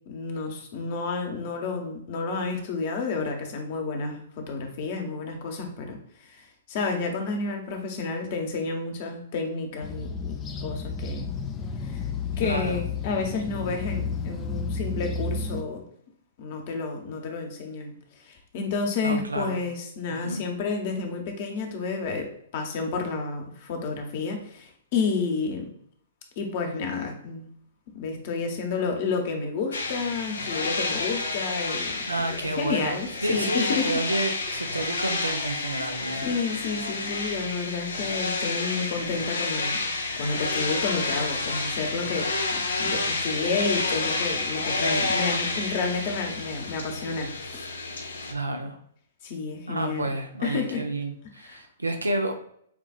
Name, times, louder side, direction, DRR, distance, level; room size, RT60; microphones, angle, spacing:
voice 1, 0.1-11.3 11.8-12.0 12.4-15.9 16.4-25.7 26.4-27.5 27.9-34.0 34.5-34.6 36.2-39.8 40.1-47.7 49.2-50.1 50.4-50.8 51.4-51.6, left 4 dB, 50° left, 3 dB, 1.0 m, -30 dB
sound 1, 9.8-15.6, left 4 dB, 25° left, 0.5 m, -32 dB
voice 2, 12.4-12.8 19.0-19.6 20.1-20.4 32.1-33.0 33.2-36.3 48.3-48.8 49.7-52.3, right 2 dB, 90° right, 5 dB, 0.7 m, -30 dB
sound 2, 29.7-48.3, left 3 dB, 80° left, 0.7 m, -30 dB
7.0 x 2.5 x 2.4 m, 0.67 s
figure-of-eight pair, 115°, 0 cm